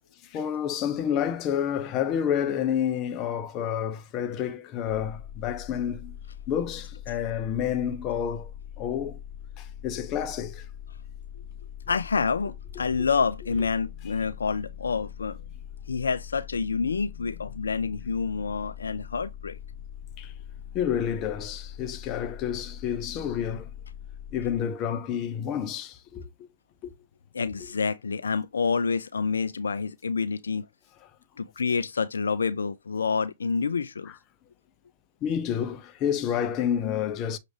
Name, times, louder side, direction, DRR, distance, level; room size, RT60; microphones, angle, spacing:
voice 1, 0.2-6.1 6.5-8.5 8.8-9.2 9.6-10.7 20.2-20.3 20.7-23.7 24.3-26.5 26.8-26.9 35.2-37.4, left 9 dB, 35° left, 0.6 m, -29 dB
sound 1, 4.9-24.6, left 9 dB, 65° left, 0.8 m, -42 dB
voice 2, 11.9-15.4 15.9-19.6 27.3-30.7 31.4-34.1, left 5 dB, 80° left, 0.3 m, -28 dB
6.2 x 2.5 x 3.2 m
hypercardioid pair, 120°, 0 cm